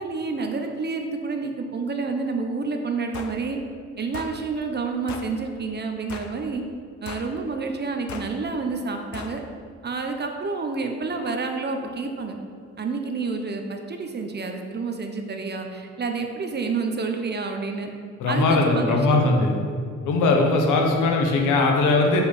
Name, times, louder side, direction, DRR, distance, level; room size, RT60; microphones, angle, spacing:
voice 1, 0.0-3.6 4.0-6.6 7.0-9.4 9.8-12.4 12.8-17.9 18.3-19.4, right 4 dB, 35° right, 4 dB, 0.9 m, -29 dB
sound 1, 3.1-3.4 4.1-4.4 5.1-5.3 6.1-6.4 7.1-7.3 8.1-8.3 9.1-9.4, left 6 dB, 70° left, 0.8 m, -37 dB
voice 2, 18.2-19.5 20.0-22.2, left 3 dB, 85° left, 1 dB, 1.3 m, -20 dB
7.8 x 5.7 x 4.3 m, 2.1 s
cardioid pair, 90°, 30 cm